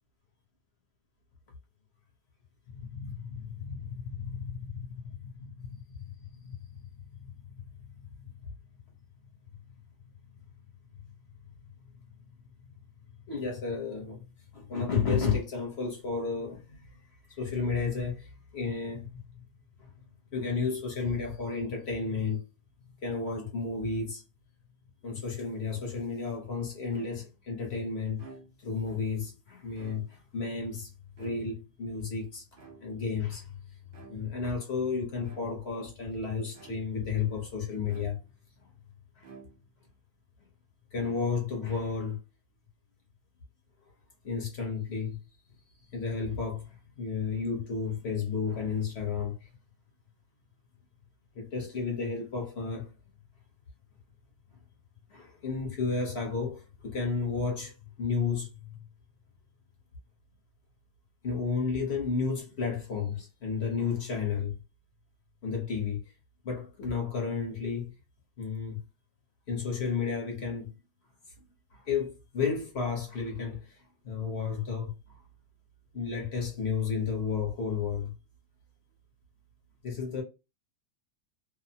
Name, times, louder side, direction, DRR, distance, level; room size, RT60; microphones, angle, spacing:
voice 1, 2.7-4.9 5.2-5.8 6.3-6.4 13.3-14.2 14.5-16.8 17.3-19.1 20.3-22.4 23.0-24.2 25.0-28.2 28.6-30.9 31.2-33.6 34.1-38.2 39.2-39.3 40.9-42.2 44.2-45.2 45.9-46.7 47.0-49.5 51.3-52.9 55.1-58.8 61.2-64.6 65.4-66.0 66.4-67.9 68.4-68.8 69.5-70.7 71.7-73.8 74.0-74.9 75.9-78.1 79.8-80.2, left 5 dB, 50° left, 0.8 m, -32 dB
sound 1, 26.9-27.5 28.1-28.8 29.6-30.4 31.2-31.9 32.6-33.2 33.9-34.5 35.2-35.8 36.5-37.1 37.9-38.5 39.2-39.9, right 4 dB, 85° right, 0.4 m, -52 dB
2.8 x 2.0 x 2.6 m
omnidirectional pair, 1.8 m